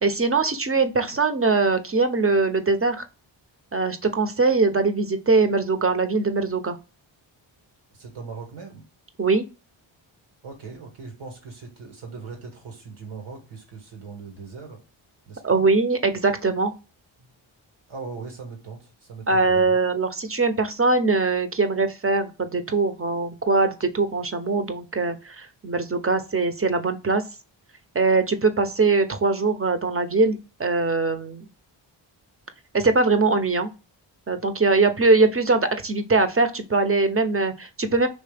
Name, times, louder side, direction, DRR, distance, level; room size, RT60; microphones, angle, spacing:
voice 1, 0.0-3.0 3.7-6.8 9.2-9.4 15.4-16.7 19.3-27.2 27.9-31.4 32.7-33.7 34.3-38.1, right 3 dB, 25° right, 9 dB, 0.8 m, -22 dB
voice 2, 7.9-8.8 10.4-14.8 15.3-15.6 17.2-17.3 17.9-19.8, right 4 dB, 80° right, 3 dB, 1.7 m, -39 dB
4.3 x 3.1 x 3.4 m, 0.30 s
cardioid pair, 50°, 49 cm